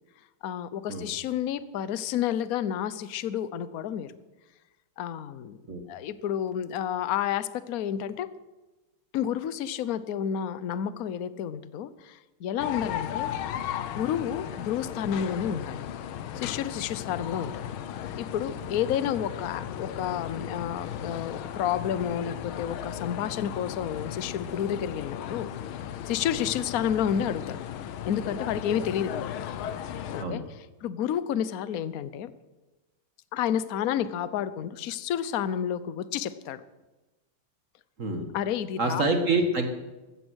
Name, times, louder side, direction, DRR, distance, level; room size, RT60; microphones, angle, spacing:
voice 1, 0.4-4.2 5.0-5.6 5.9-8.3 9.1-13.3 13.9-15.9 16.3-17.7 18.2-25.5 26.0-27.6 28.1-29.3 30.1-30.4 30.8-32.3 33.3-36.6 38.3-39.0, left 9 dB, 60° left, 15 dB, 0.9 m, -30 dB
sound 1, 12.6-30.3, left 10 dB, 75° left, 1.6 m, -36 dB
voice 2, 38.8-39.7, right 2 dB, 40° right, 6 dB, 1.7 m, -26 dB
15.5 x 13.5 x 6.3 m, 1.1 s
omnidirectional pair, 2.4 m